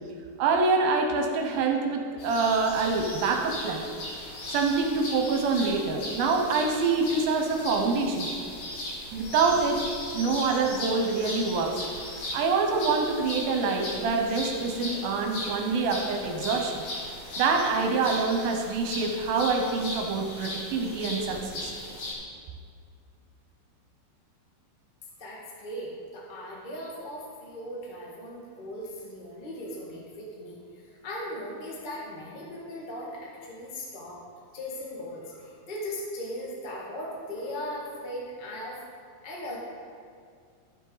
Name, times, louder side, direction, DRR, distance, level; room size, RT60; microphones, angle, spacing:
voice 1, 0.4-3.9 4.5-8.3 9.1-9.8 10.1-16.8 17.4-21.7, right 4 dB, 75° right, 3 dB, 2.5 m, -26 dB
sound 1, 2.2-22.1, left 1 dB, 65° left, 3.7 m, -37 dB
voice 2, 25.2-34.2 34.5-38.8 39.2-39.6, equal, 90° left, -4 dB, 0.4 m, -38 dB
13.0 x 7.1 x 4.0 m, 2.2 s
omnidirectional pair, 4.4 m